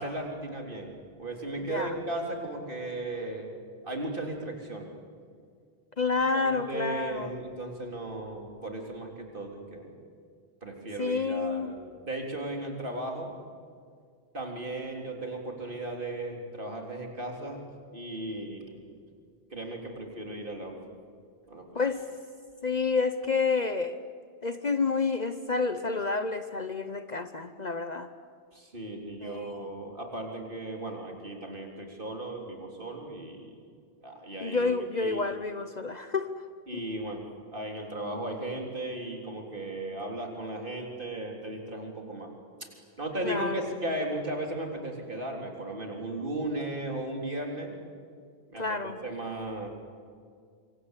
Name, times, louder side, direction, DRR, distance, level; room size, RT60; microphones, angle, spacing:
voice 1, 0.0-4.9 6.3-9.9 10.6-11.8 12.0-13.3 14.3-17.6 17.9-18.8 19.5-20.7 21.5-21.7 28.5-33.6 34.0-34.7 35.0-35.2 36.7-37.2 37.5-42.3 43.0-47.7 48.5-49.7, right 1 dB, 50° right, 1 dB, 3.9 m, -36 dB
voice 2, 1.6-2.0 6.0-7.3 11.0-11.7 21.7-22.0 22.6-24.0 24.4-28.1 29.2-29.7 34.4-36.3 36.7-36.8 43.2-43.6 48.6-49.0, left 4 dB, 40° left, 9 dB, 1.0 m, -29 dB
26.0 x 24.5 x 8.3 m, 2.1 s
omnidirectional pair, 1.1 m